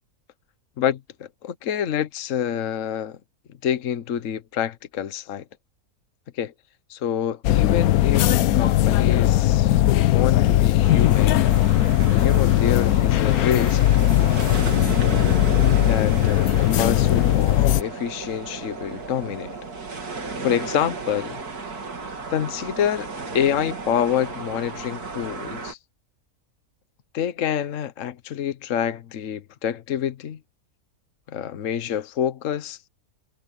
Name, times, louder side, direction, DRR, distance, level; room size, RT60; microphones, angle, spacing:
voice 1, 0.8-3.2 3.6-5.5 6.3-6.5 6.9-9.8 10.1-11.4 12.2-13.8 15.9-19.6 20.4-21.4 22.3-25.8 27.1-30.4 31.3-32.9, left 9 dB, 60° left, 1.3 m, -27 dB
sound 1, 7.4-17.8, left 13 dB, 80° left, 1.1 m, -19 dB
sound 2, 10.8-25.7, right 4 dB, 85° right, 3.2 m, -34 dB
omnidirectional pair, 1.6 m